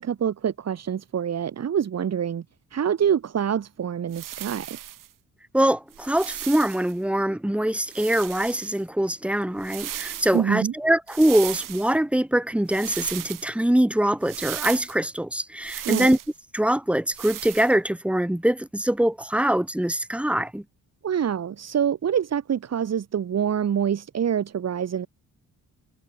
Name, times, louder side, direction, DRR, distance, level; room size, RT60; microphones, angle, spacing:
voice 1, 0.0-2.4 2.7-4.8 10.3-10.7 15.8-16.1 21.0-25.1, right 8 dB, 55° right, 6.8 m, -26 dB
sound 1, 4.1-5.1 5.9-6.9 7.9-8.8 9.6-10.4 11.1-12.0 12.7-13.5 14.2-15.0 15.6-16.3 17.1-17.7, right 12 dB, 85° right, 4.9 m, -36 dB
voice 2, 5.5-16.2 16.5-20.6, right 1 dB, 5° right, 6.7 m, -23 dB
cardioid pair, 135°, 32 cm